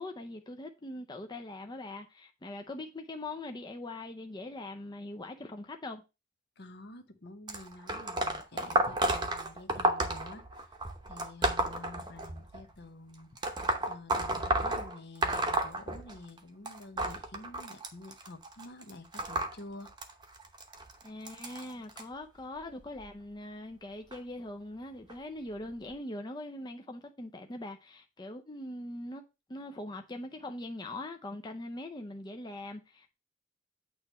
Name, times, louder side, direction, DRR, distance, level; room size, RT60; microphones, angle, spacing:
voice 1, 0.0-6.0 21.0-29.2 29.5-33.1, left 1 dB, 20° left, 0.6 m, -42 dB
voice 2, 6.6-10.4 11.1-13.3 13.9-19.9, left 2 dB, 60° left, 1.0 m, -49 dB
sound 1, 7.5-12.6 13.4-16.4 16.7-22.0 22.8-23.1 24.1-24.2 25.1-25.2 25.9-26.0, right 2 dB, 25° right, 0.9 m, -32 dB
8.8 x 3.0 x 5.5 m
head